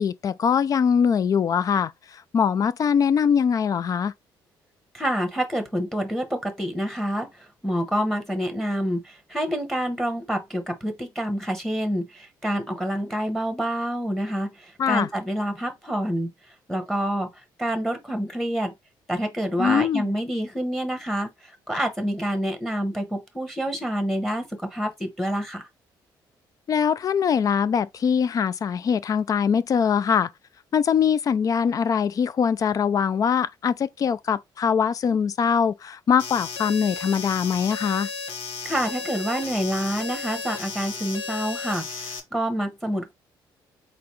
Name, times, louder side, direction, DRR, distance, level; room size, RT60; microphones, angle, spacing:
voice 1, 0.0-1.9 2.3-4.1 14.8-15.1 19.6-20.1 26.7-30.3 30.7-38.1, left 7 dB, 40° left, 0.4 m, -22 dB
voice 2, 4.9-16.3 16.7-17.3 17.6-18.7 19.1-25.7 38.6-43.1, equal, ahead, 1.2 m, -27 dB
sound 1, 36.2-42.2, left 5 dB, 80° left, 1.5 m, -34 dB
4.1 x 3.2 x 3.1 m
cardioid pair, 110°, 9 cm